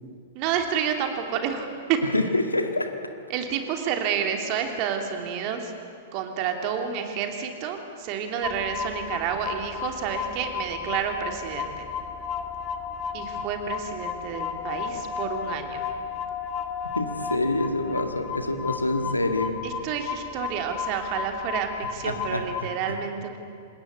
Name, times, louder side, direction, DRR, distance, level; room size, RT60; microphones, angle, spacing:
voice 1, 0.3-2.0 3.3-5.7 6.1-11.8 13.1-15.8 19.6-23.4, right 7 dB, 40° right, 4 dB, 3.0 m, -29 dB
voice 2, 2.1-2.9 17.0-19.6 22.0-22.4 22.9-23.0, left 2 dB, 85° left, 6 dB, 2.0 m, -26 dB
sound 1, 8.4-22.6, left 7 dB, 20° left, 2.1 m, -33 dB
26.5 x 20.5 x 8.2 m, 2.4 s
figure-of-eight pair, 100°, 0 cm